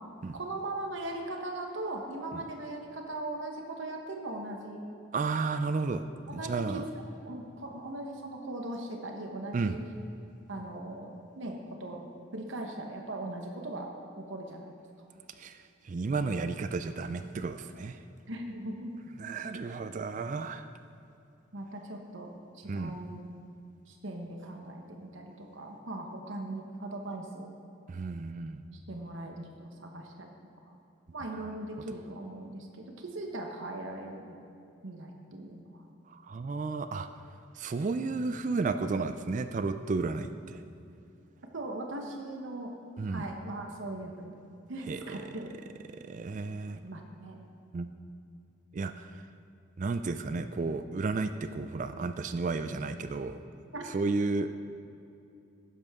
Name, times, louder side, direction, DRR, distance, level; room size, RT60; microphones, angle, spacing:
voice 1, 0.3-4.8 6.3-9.8 10.5-14.8 18.3-18.9 21.5-23.3 23.9-27.5 28.9-30.3 30.6-30.7 31.1-34.4 34.8-35.8 41.5-42.7 43.1-44.3 44.7-45.5 46.8-47.4 53.7-53.9, right 2 dB, 70° right, 2 dB, 1.1 m, -39 dB
voice 2, 5.1-6.1 6.3-6.8 9.5-9.8 15.4-18.0 19.2-20.7 22.7-23.0 27.9-28.7 36.1-37.1 37.5-40.6 43.0-43.3 44.9-45.2 45.9-46.8 47.7-47.9 48.7-49.2 49.8-53.4 53.9-54.5, right 3 dB, 35° right, 10 dB, 0.3 m, -33 dB
12.0 x 10.5 x 3.6 m, 2.7 s
head